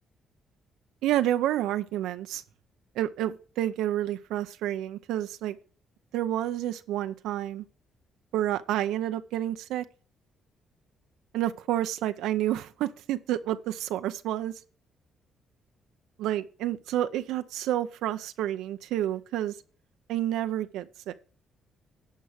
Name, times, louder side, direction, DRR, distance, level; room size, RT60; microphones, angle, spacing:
voice 1, 1.0-2.4 3.0-5.6 6.1-7.7 8.3-9.9 11.3-14.5 16.2-19.6 20.1-21.1, right 12 dB, 90° right, 0.5 m, -29 dB
11.0 x 4.6 x 6.7 m
cardioid pair, 90°, 0 cm